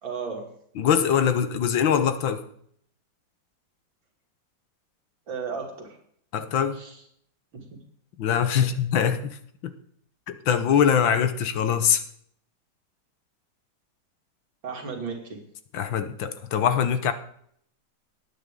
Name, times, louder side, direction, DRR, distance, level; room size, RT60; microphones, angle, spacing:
voice 1, 0.0-0.5 5.3-6.0 6.7-7.0 7.5-7.7 8.6-8.7 14.6-15.4, right 5 dB, 90° right, 1 dB, 3.5 m, -34 dB
voice 2, 0.8-2.4 6.3-6.8 8.2-9.4 9.6-9.7 10.3-12.0 15.7-17.1, left 8 dB, 90° left, 10 dB, 1.9 m, -23 dB
19.5 x 9.1 x 3.8 m, 0.65 s
omnidirectional pair, 2.0 m